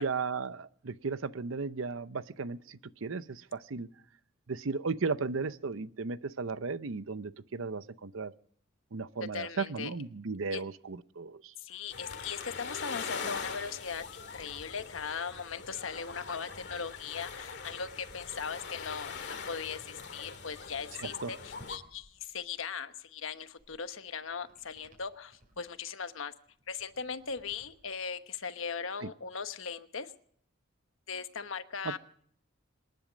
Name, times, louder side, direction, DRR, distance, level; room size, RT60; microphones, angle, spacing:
voice 1, 0.0-3.9 4.5-8.3 8.9-11.5 21.0-21.3 29.0-29.1 31.8-32.0, right 4 dB, 80° right, 15 dB, 0.7 m, -35 dB
voice 2, 9.3-9.9 10.5-10.6 11.6-26.3 26.7-30.1 31.1-32.0, left 6 dB, 85° left, 9 dB, 1.1 m, -39 dB
sound 1, 11.9-21.8, left 5 dB, 60° left, 2.1 m, -42 dB
sound 2, 21.5-28.7, equal, 45° right, 6.4 m, -62 dB
26.5 x 10.5 x 5.1 m, 0.62 s
head